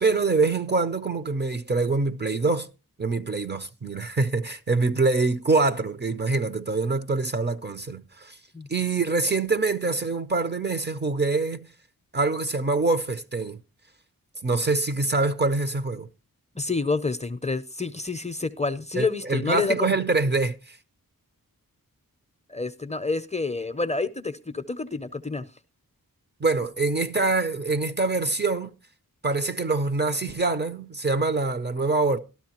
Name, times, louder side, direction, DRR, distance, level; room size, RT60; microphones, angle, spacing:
voice 1, 0.0-2.7 3.0-8.4 8.7-11.7 12.1-13.6 14.4-16.1 19.0-20.8 26.4-28.7 29.2-32.2, right 3 dB, 30° right, 0.5 m, -25 dB
voice 2, 16.5-19.9 22.5-25.5, left 3 dB, 20° left, 0.5 m, -28 dB
12.5 x 12.5 x 2.9 m
wide cardioid pair, 105°, 35 cm